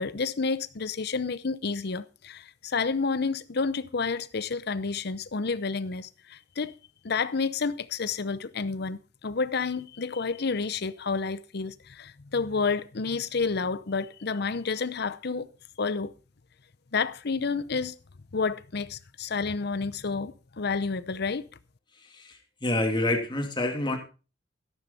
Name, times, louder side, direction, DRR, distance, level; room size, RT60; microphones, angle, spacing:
voice 1, 0.0-6.7 7.0-15.5 15.8-16.1 16.9-17.9 18.3-21.5, left 4 dB, 60° left, 0.7 m, -30 dB
voice 2, 22.1-24.0, left 1 dB, 25° left, 2.6 m, -27 dB
13.0 x 11.5 x 4.2 m
head